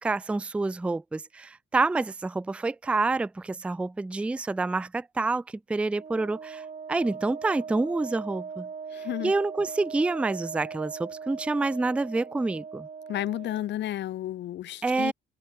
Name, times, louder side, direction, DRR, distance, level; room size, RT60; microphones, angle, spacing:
voice 1, 0.0-5.4 5.7-8.7 9.2-12.9 14.8-15.1, right 3 dB, 5° right, 0.3 m, -28 dB
Wind instrument woodwind instrument, 5.9-13.7, right 6 dB, 40° right, 2.4 m, -40 dB
voice 2, 8.9-9.3 13.1-15.1, left 13 dB, 65° left, 0.6 m, -32 dB
cardioid pair, 90°, 20 cm